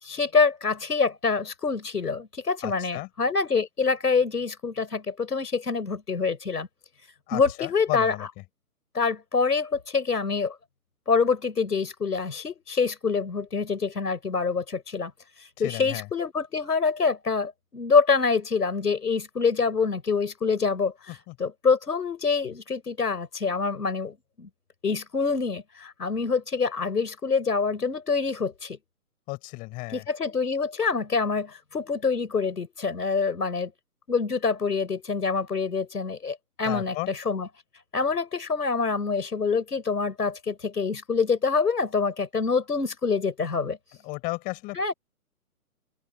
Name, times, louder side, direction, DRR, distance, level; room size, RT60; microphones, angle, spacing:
voice 1, 0.0-6.7 7.3-8.1 8.9-10.6 11.1-15.1 15.6-20.9 21.4-24.5 24.8-28.8 29.9-33.7 34.1-37.5 37.9-43.8 44.8-44.9, left 5 dB, 90° left, 5.6 m, -26 dB
voice 2, 2.6-3.1 7.3-8.3 15.6-16.1 21.1-21.3 29.3-30.1 36.6-37.1 44.0-44.9, left 23 dB, 20° left, 6.7 m, -34 dB
open air
hypercardioid pair, 160°, 46 cm